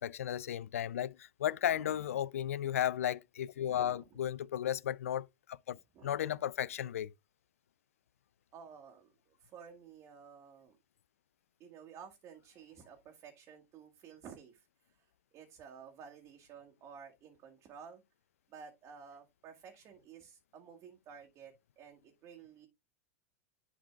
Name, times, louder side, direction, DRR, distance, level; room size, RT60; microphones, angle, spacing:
voice 1, 0.0-7.1, left 11 dB, 80° left, 0.3 m, -34 dB
voice 2, 1.7-2.1 3.6-4.2 5.9-6.4 8.5-10.8 11.6-18.0 18.5-22.7, right 7 dB, 40° right, 1.8 m, -53 dB
11.0 x 5.2 x 2.3 m
hypercardioid pair, 100°, 7 cm